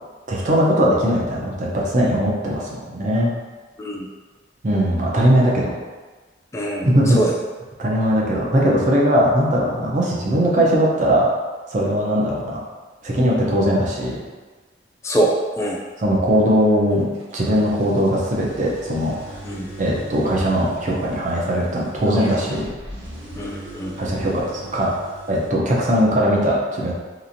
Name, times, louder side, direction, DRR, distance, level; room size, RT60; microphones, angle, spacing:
voice 1, 0.3-3.3 4.6-5.7 6.8-7.2 7.8-11.3 11.7-12.6 13.0-14.2 16.0-17.1 17.3-19.4 19.8-22.7 24.0-24.9 25.3-26.9, equal, 40° right, -3 dB, 0.5 m, -19 dB
voice 2, 6.5-6.9 7.2-7.3 15.0-15.8 19.4-19.7 23.4-23.9, right 1 dB, 15° left, -2 dB, 0.3 m, -23 dB
sound 1, 16.9-25.5, right 1 dB, 75° right, 0.7 m, -39 dB
2.9 x 2.5 x 2.6 m, 1.3 s
head